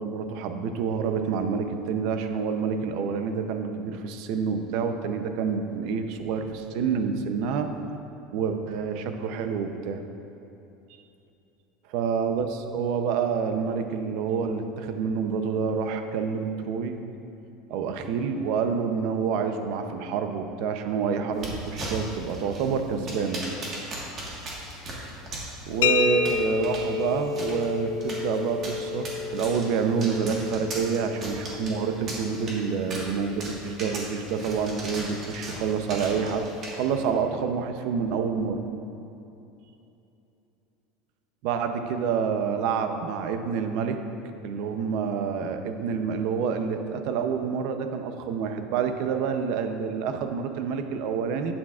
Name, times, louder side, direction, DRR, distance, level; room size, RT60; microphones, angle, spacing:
voice 1, 0.0-7.7 8.3-10.0 11.9-17.0 17.7-23.4 25.7-36.5 36.7-38.6 41.4-44.0 44.4-51.5, right 6 dB, 50° right, 7 dB, 0.6 m, -28 dB
sound 1, 21.3-37.1, right 1 dB, 25° right, 1.4 m, -39 dB
sound 2, 25.8-33.4, left 6 dB, 75° left, 0.4 m, -31 dB
11.5 x 8.7 x 2.4 m, 2.8 s
cardioid pair, 175°, 0 cm